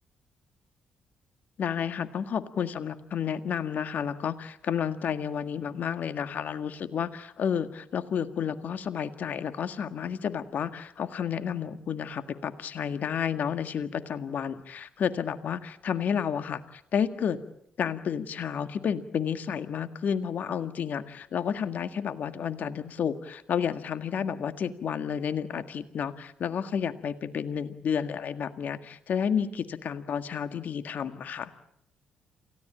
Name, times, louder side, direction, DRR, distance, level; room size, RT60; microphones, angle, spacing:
voice 1, 1.6-17.4 17.8-31.5, left 7 dB, 55° left, 10 dB, 1.8 m, -31 dB
28.5 x 17.0 x 8.9 m, 0.74 s
hypercardioid pair, 45°, 3 cm